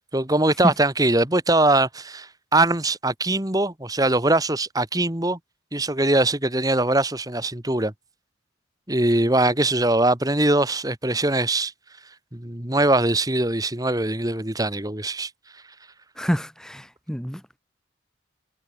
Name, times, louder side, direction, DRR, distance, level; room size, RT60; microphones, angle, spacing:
voice 1, 0.1-5.4 5.7-7.9 8.9-11.7 12.3-15.3, right 2 dB, 20° right, 2.1 m, -22 dB
voice 2, 16.2-17.6, equal, 5° left, 1.8 m, -27 dB
head